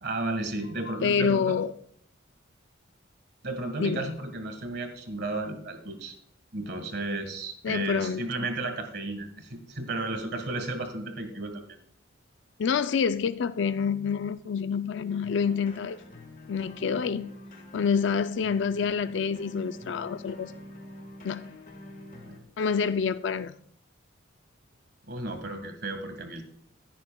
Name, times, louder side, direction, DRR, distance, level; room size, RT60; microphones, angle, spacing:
voice 1, 0.0-1.6 3.4-6.2 6.5-11.6 22.3-22.4 25.1-26.4, right 2 dB, 55° right, 7 dB, 1.6 m, -33 dB
voice 2, 0.9-1.7 3.8-4.1 7.6-8.5 12.6-16.0 16.5-17.3 17.7-20.5 21.2-21.6 22.6-23.5, left 6 dB, 65° left, 12 dB, 0.4 m, -27 dB
sound 1, 15.2-22.4, left 1 dB, 45° left, 1.6 m, -46 dB
15.5 x 9.7 x 2.3 m, 0.66 s
head